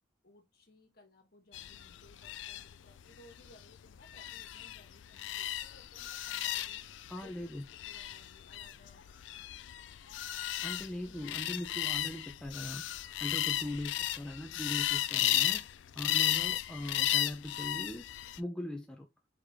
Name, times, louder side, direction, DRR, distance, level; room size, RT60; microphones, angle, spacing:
voice 1, 0.2-9.2 11.0-11.5, left 1 dB, 50° left, 1.5 m, -61 dB
sound 1, 1.5-18.4, left 13 dB, 75° left, 0.4 m, -35 dB
voice 2, 7.1-7.6 10.6-15.6 16.0-19.1, left 1 dB, 5° left, 0.5 m, -40 dB
5.0 x 2.9 x 3.6 m
head